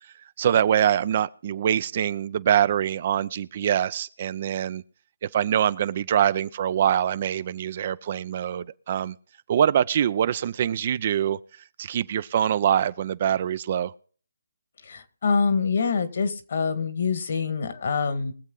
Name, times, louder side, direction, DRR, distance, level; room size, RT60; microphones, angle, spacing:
voice 1, 0.4-4.8 5.3-9.1 9.5-11.4 11.8-13.9, right 9 dB, 40° right, 0.5 m, -24 dB
voice 2, 14.9-18.3, left 5 dB, 55° left, 1.7 m, -25 dB
22.0 x 7.4 x 3.8 m
figure-of-eight pair, 155°, 0 cm